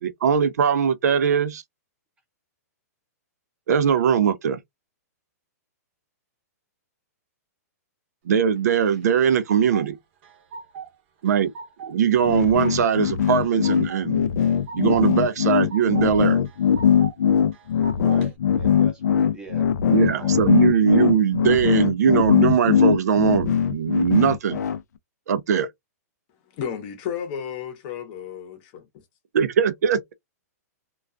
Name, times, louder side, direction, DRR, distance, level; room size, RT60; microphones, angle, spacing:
voice 1, 0.0-1.6 3.7-4.6 8.3-10.0 11.2-11.5 11.8-14.3 14.7-16.4 19.9-24.6 25.3-25.7 29.3-30.1, right 7 dB, 75° right, 0.4 m, -21 dB
sound 1, 8.9-9.9 10.2-11.0 11.3-11.9 12.3-13.0 13.3-14.0 14.4-15.1 15.4-16.1 16.5-17.2 17.5-18.3, right 5 dB, 45° right, 0.7 m, -39 dB
sound 2, 12.2-24.8, left 8 dB, 85° left, 0.4 m, -20 dB
voice 2, 18.0-20.3, right 2 dB, 10° right, 0.7 m, -41 dB
voice 3, 26.5-29.0, left 8 dB, 35° left, 0.7 m, -33 dB
2.3 x 2.2 x 2.4 m
hypercardioid pair, 155°, 9 cm